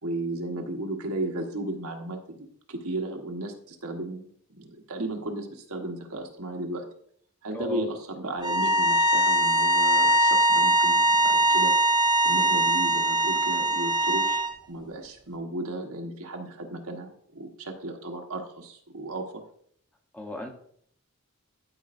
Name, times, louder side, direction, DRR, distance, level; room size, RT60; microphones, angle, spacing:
voice 1, 0.0-6.9 7.4-11.7 12.2-19.4, right 1 dB, 75° right, 2 dB, 1.2 m, -35 dB
voice 2, 7.5-7.9 20.1-20.5, left 2 dB, 5° left, 2 dB, 0.9 m, -34 dB
sound 1, 8.4-14.5, right 1 dB, 20° right, 0.5 m, -22 dB
12.0 x 5.2 x 2.6 m, 0.64 s
head